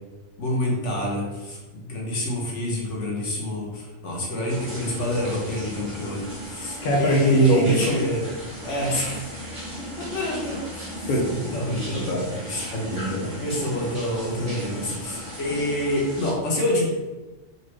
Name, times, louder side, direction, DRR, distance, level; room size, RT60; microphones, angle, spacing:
voice 1, 0.4-8.2 8.6-9.3 10.0-11.1 11.5-12.1 12.5-12.7 13.4-16.8, left 1 dB, 65° left, -3 dB, 1.2 m, -27 dB
sound 1, 4.5-16.3, equal, 25° right, 0.9 m, -36 dB
voice 2, 6.8-7.9 11.1-12.4 12.7-13.3, equal, 50° left, -3 dB, 0.7 m, -23 dB
4.0 x 2.5 x 3.1 m, 1.2 s
omnidirectional pair, 1.4 m